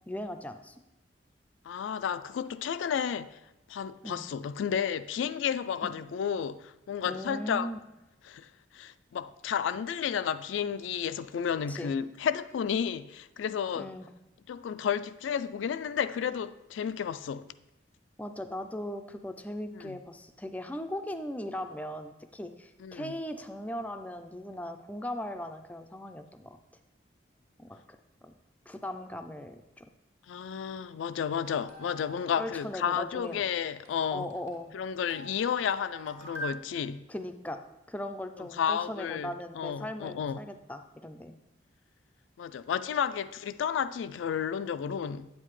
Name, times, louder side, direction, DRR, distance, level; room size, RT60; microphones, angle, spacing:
voice 1, 0.1-0.8 4.0-4.3 5.8-5.9 7.1-7.8 11.7-11.9 13.8-14.1 18.2-26.6 27.6-28.3 28.7-29.9 32.4-33.5 34.1-34.7 37.1-37.6 37.9-41.4, left 1 dB, 10° left, 0.3 m, -39 dB
voice 2, 1.6-3.4 3.7-7.7 8.3-13.9 14.5-17.5 19.7-20.0 22.8-23.1 30.3-34.3 34.7-37.0 38.4-40.4 42.4-45.3, left 7 dB, 85° left, 0.3 m, -32 dB
sound 1, 31.4-36.6, right 2 dB, 35° right, 1.7 m, -46 dB
8.8 x 7.7 x 3.1 m
head